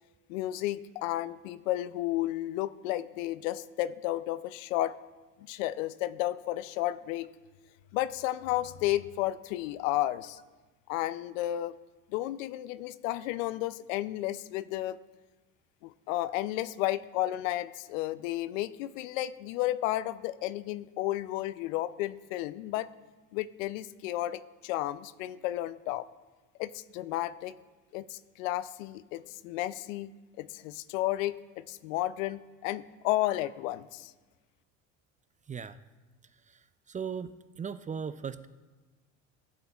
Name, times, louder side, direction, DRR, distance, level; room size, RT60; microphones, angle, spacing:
voice 1, 0.3-4.9 5.5-7.3 7.9-10.4 10.9-11.8 12.1-15.0 15.8-22.9 23.3-26.1 26.6-27.5 27.9-30.1 30.4-34.1, left 15 dB, 85° left, 16 dB, 0.5 m, -32 dB
voice 2, 36.9-38.5, right 6 dB, 20° right, 13 dB, 0.4 m, -37 dB
15.5 x 8.4 x 2.4 m, 1.2 s
hypercardioid pair, 75°, 38 cm